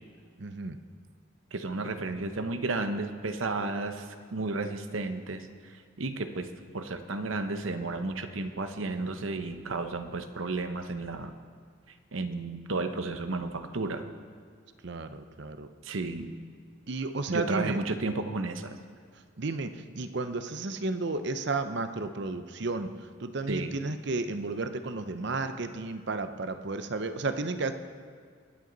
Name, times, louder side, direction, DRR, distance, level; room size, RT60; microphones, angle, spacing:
voice 1, 0.4-0.8 14.8-15.7 16.9-17.8 19.4-22.9 23.2-27.7, right 3 dB, 60° right, 9 dB, 0.7 m, -32 dB
voice 2, 1.5-5.7 6.0-6.5 6.7-11.3 12.1-14.0 15.8-16.3 17.3-18.8 23.5-23.7, right 3 dB, 85° right, 8 dB, 1.0 m, -33 dB
22.5 x 9.6 x 4.0 m, 2.1 s
head